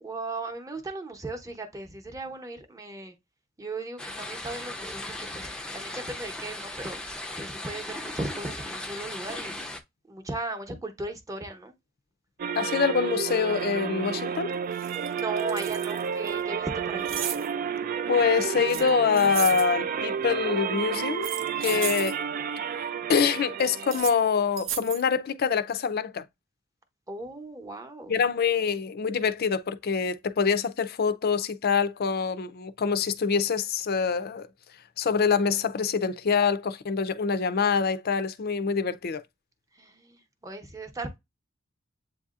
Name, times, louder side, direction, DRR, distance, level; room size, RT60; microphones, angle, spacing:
voice 1, 0.0-3.1 3.6-5.5 5.7-7.0 7.4-9.5 10.1-11.7 15.1-17.2 21.7-22.0 27.1-28.1 39.7-41.2, right 2 dB, 15° right, 0.9 m, -37 dB
sound 1, 4.0-9.8, left 1 dB, 5° left, 0.5 m, -37 dB
sound 2, 12.4-24.3, right 7 dB, 45° right, 0.3 m, -31 dB
voice 2, 12.6-14.5 18.1-21.3 21.6-22.1 23.1-26.2 28.1-34.5 35.0-39.2, left 6 dB, 55° left, 0.5 m, -25 dB
sound 3, 14.2-14.3 14.7-16.3 17.0-17.5 18.7-19.7 21.1-22.1 23.8-24.1 24.6-25.0, right 9 dB, 80° right, 0.6 m, -35 dB
8.1 x 2.7 x 2.4 m
head